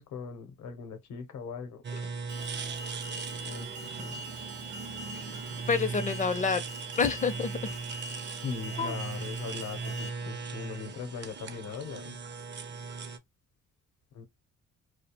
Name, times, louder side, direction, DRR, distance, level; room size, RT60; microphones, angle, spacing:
voice 1, 0.0-1.8 3.4-3.7 4.0-4.2 8.4-12.2 14.1-14.2, left 5 dB, 70° left, 0.7 m, -40 dB
sound 1, 1.8-13.2, right 4 dB, 35° right, 0.5 m, -39 dB
Alarm, 2.3-10.1, right 2 dB, 90° right, 0.7 m, -43 dB
voice 2, 5.7-6.6 7.0-7.7 8.8-9.0, left 5 dB, 25° left, 0.5 m, -28 dB
2.4 x 2.1 x 2.8 m
cardioid pair, 90°, 30 cm